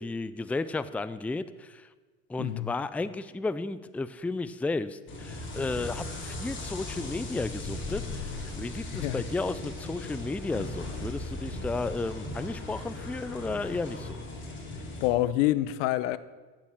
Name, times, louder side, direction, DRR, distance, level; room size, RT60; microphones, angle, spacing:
voice 1, 0.0-1.9 2.3-14.2, left 3 dB, 5° left, 0.4 m, -33 dB
voice 2, 2.4-2.7 8.9-9.2 15.0-16.2, left 15 dB, 80° left, 0.8 m, -27 dB
sound 1, 5.1-15.1, left 2 dB, 30° left, 3.7 m, -38 dB
15.5 x 7.6 x 7.3 m
supercardioid pair, 95°, 37 cm